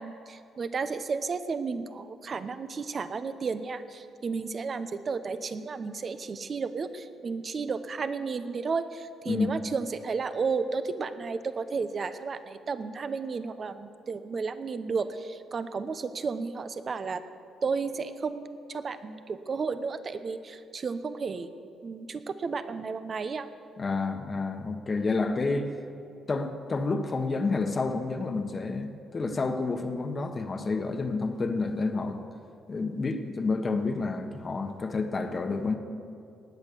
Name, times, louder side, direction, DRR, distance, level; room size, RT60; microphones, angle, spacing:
voice 1, 0.0-17.2 17.6-21.5 21.8-23.5, right 4 dB, 45° right, 11 dB, 0.8 m, -33 dB
voice 2, 23.8-25.7 26.3-32.2 32.7-35.8, left 3 dB, 35° left, 6 dB, 1.3 m, -29 dB
19.0 x 8.1 x 7.0 m, 2.5 s
cardioid pair, 90°, 0 cm